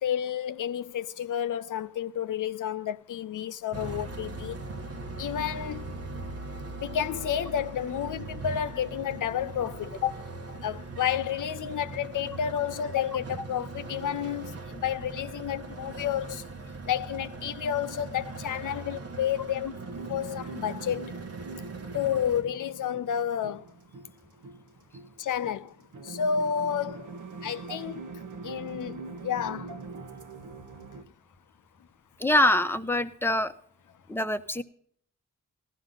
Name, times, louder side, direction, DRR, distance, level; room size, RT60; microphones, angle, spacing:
voice 1, 0.0-4.6 5.2-5.9 6.8-16.4 16.9-19.8 20.1-21.1 21.9-23.6 25.2-25.7 26.0-27.1 27.4-28.0 28.4-29.7, left 9 dB, 70° left, 0.6 m, -31 dB
sound 1, 3.7-22.4, right 3 dB, 45° right, 1.1 m, -40 dB
sound 2, 19.7-31.0, right 4 dB, 65° right, 1.1 m, -42 dB
voice 2, 32.2-33.5 34.1-34.6, left 1 dB, 5° left, 0.9 m, -24 dB
14.5 x 11.5 x 3.8 m
cardioid pair, 45°, 33 cm